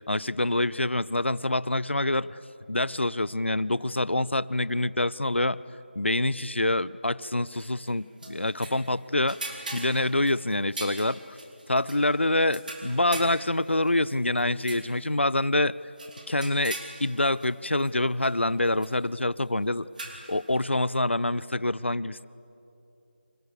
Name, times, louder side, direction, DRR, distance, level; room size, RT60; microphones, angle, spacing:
voice 1, 0.1-2.4 2.7-5.6 6.0-11.2 11.7-15.7 16.3-19.9 20.3-22.3, left 1 dB, 90° left, 19 dB, 0.8 m, -26 dB
sound 1, 7.6-8.9 9.3-12.0 12.5-15.0 15.4-15.5 16.0-17.5 17.8-17.9 18.2-18.3 18.7-18.9 20.0-20.4, right 2 dB, 45° right, 4.2 m, -41 dB
29.5 x 27.0 x 6.8 m, 2.9 s
figure-of-eight pair, 170°, 6 cm